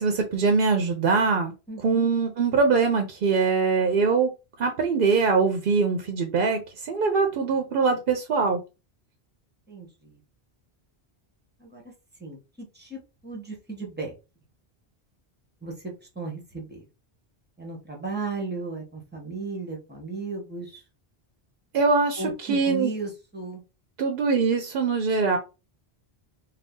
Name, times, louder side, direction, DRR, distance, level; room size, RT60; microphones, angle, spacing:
voice 1, 0.0-1.5 1.8-4.3 4.6-8.6 21.7-22.9 24.0-25.4, right 4 dB, 65° right, 4 dB, 0.7 m, -23 dB
voice 2, 1.7-2.1 9.7-10.2 11.6-11.8 12.2-14.1 15.6-16.8 17.6-20.8 22.2-23.6, right 3 dB, 10° right, 0 dB, 0.9 m, -35 dB
2.6 x 2.3 x 3.5 m, 0.29 s
omnidirectional pair, 1.1 m